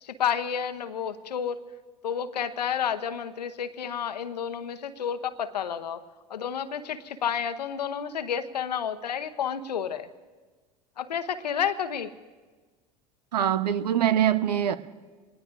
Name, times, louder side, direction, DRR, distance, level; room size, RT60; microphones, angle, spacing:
voice 1, 0.0-1.6 2.0-6.0 6.3-10.1 11.0-12.1, left 8 dB, 80° left, 0.9 m, -30 dB
voice 2, 13.3-14.8, right 10 dB, 80° right, 0.8 m, -23 dB
26.5 x 20.0 x 2.6 m
figure-of-eight pair, 75°, 21 cm